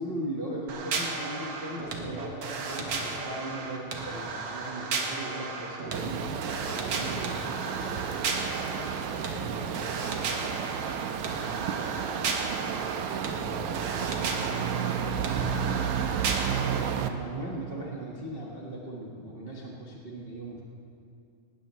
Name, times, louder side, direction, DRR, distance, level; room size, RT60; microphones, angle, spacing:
voice 1, 0.0-6.2 6.6-7.4 16.4-20.6, right 1 dB, 35° right, -4 dB, 0.9 m, -38 dB
sound 1, 0.7-16.8, right 3 dB, 60° right, 2.1 m, -34 dB
sound 2, 5.9-17.1, right 8 dB, 85° right, 2.1 m, -32 dB
voice 2, 6.2-10.8 11.4-15.2, left 1 dB, 50° left, -3 dB, 2.8 m, -48 dB
19.0 x 18.5 x 3.1 m, 2.5 s
omnidirectional pair, 3.3 m